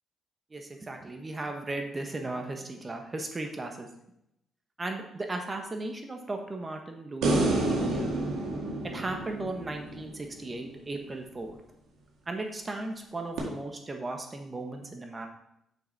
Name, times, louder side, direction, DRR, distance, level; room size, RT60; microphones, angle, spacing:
voice 1, 0.5-3.9 4.8-8.1 8.9-11.6 12.3-15.3, right 2 dB, 25° right, 4 dB, 1.3 m, -36 dB
sound 1, 7.2-10.5 13.4-13.5, right 2 dB, 90° right, 2.0 m, -29 dB
6.7 x 5.7 x 4.2 m, 0.80 s
cardioid pair, 90°, 0 cm